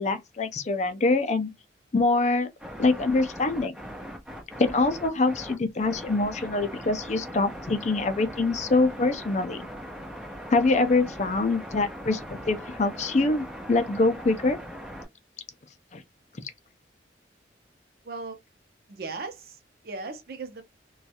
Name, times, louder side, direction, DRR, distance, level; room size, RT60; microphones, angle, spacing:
voice 1, 0.0-1.5 1.9-2.5 2.8-3.7 4.6-9.6 10.5-12.2 12.5-14.6 15.9-16.0, left 3 dB, 40° left, 0.4 m, -24 dB
sound 1, 2.6-15.0, equal, 5° right, 1.3 m, -40 dB
voice 2, 18.0-18.4 18.9-20.6, right 3 dB, 55° right, 0.6 m, -37 dB
3.1 x 2.3 x 2.8 m
head